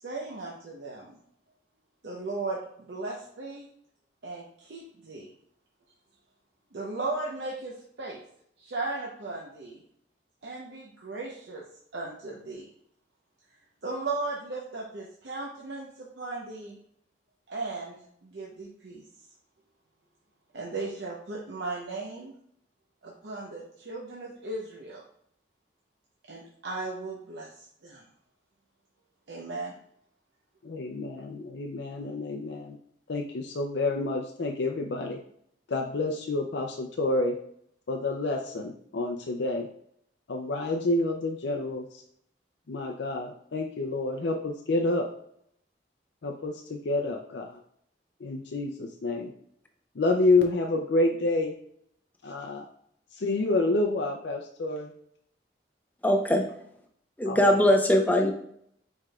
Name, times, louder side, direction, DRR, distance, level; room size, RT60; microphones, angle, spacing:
voice 1, 0.0-1.2 2.0-3.7 4.2-5.3 6.7-8.2 8.6-9.8 10.4-11.6 11.9-12.7 13.8-16.8 17.5-19.0 20.5-22.4 23.0-25.0 26.3-28.0 29.3-29.7, right 3 dB, 65° right, -3 dB, 0.8 m, -36 dB
voice 2, 30.6-32.8 33.1-35.2 35.7-37.4 37.9-39.7 40.3-42.0 42.7-45.1 46.2-47.6 48.2-49.3 50.0-51.5 52.2-52.7 53.2-54.9 57.3-57.4, left 2 dB, 75° left, 2 dB, 0.5 m, -28 dB
voice 3, 56.0-56.4 57.2-58.3, left 1 dB, 10° left, 3 dB, 0.6 m, -21 dB
4.8 x 4.5 x 2.3 m, 0.70 s
head